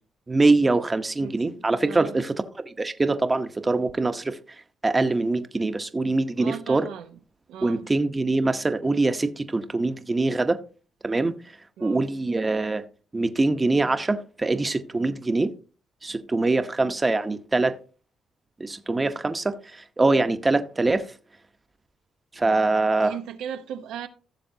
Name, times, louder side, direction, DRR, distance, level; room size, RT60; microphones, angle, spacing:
voice 1, 0.3-2.3 2.7-4.4 4.8-6.9 7.6-10.6 11.0-11.3 11.8-12.8 13.1-15.5 16.0-17.8 18.6-21.1 22.4-23.1, right 3 dB, 20° right, 0.9 m, -23 dB
voice 2, 1.2-2.2 6.4-7.2 7.5-7.9 11.8-12.0 23.0-24.1, right 9 dB, 90° right, 0.8 m, -37 dB
16.0 x 7.1 x 2.7 m
cardioid pair, 90°, 0 cm